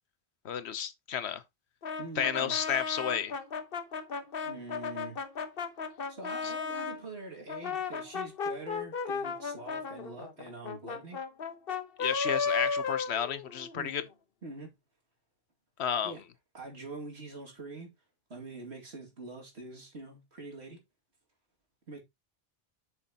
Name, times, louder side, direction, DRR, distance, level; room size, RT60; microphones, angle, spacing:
voice 1, 0.4-1.4 2.2-3.3 6.4-6.5 12.0-14.0 15.8-16.1, left 8 dB, 85° left, 1.1 m, -32 dB
Brass instrument, 1.8-7.0 7.5-13.8, left 5 dB, 60° left, 1.2 m, -35 dB
voice 2, 2.0-2.5 4.4-5.2 6.1-11.2 13.8-14.0 14.4-14.7 16.0-16.2 16.5-17.9 18.3-20.8 21.9-22.0, right 2 dB, 80° right, 2.6 m, -44 dB
8.5 x 6.3 x 2.9 m
omnidirectional pair, 1.1 m